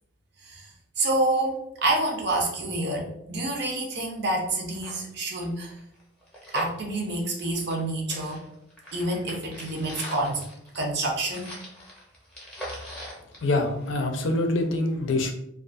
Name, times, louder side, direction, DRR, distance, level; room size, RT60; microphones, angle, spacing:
voice 1, 1.0-5.7 6.5-8.4 8.9-10.4 10.7-11.6, right 2 dB, 55° right, 0 dB, 0.6 m, -28 dB
sound 1, 3.9-4.0 4.3-4.4 4.7-7.8 8.1-14.2 14.6-14.7, equal, 5° left, 0.6 m, -41 dB
voice 2, 13.4-15.3, left 2 dB, 70° left, 4 dB, 0.4 m, -25 dB
2.4 x 2.3 x 2.5 m, 0.75 s
head